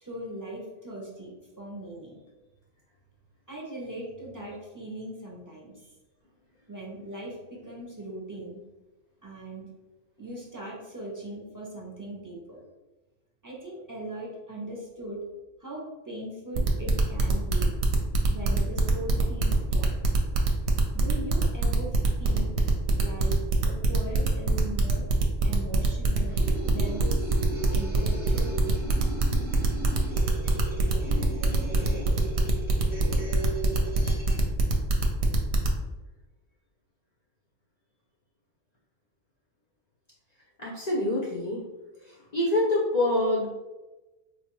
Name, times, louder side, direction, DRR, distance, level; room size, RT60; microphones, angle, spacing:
voice 1, 0.0-2.2 3.5-5.7 6.7-8.6 9.2-9.7 10.2-12.6 13.4-15.2 15.6-17.7 18.3-20.0 20.9-22.5 22.9-25.1 25.4-27.2 27.7-28.6, right 1 dB, 25° right, -3 dB, 0.4 m, -39 dB
sound 1, 16.6-35.8, right 4 dB, 65° right, 0.8 m, -24 dB
sound 2, 26.3-34.5, right 1 dB, 10° right, 0.8 m, -37 dB
voice 2, 40.6-41.6 42.3-43.5, left 1 dB, 55° left, -4 dB, 0.4 m, -25 dB
3.9 x 2.3 x 3.0 m, 1.1 s
omnidirectional pair, 1.3 m